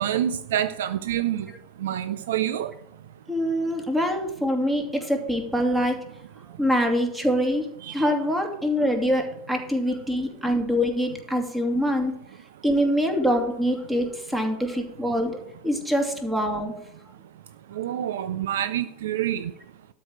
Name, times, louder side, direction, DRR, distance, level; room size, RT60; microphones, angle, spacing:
voice 1, 0.0-1.5 1.8-2.7 7.8-8.1 17.7-19.5, right 11 dB, 65° right, 14 dB, 0.5 m, -27 dB
voice 2, 3.3-6.0 6.6-12.2 12.6-15.3 15.6-16.7, equal, 10° right, 4 dB, 2.4 m, -24 dB
12.5 x 4.8 x 8.5 m, 0.77 s
figure-of-eight pair, 80°, 0 cm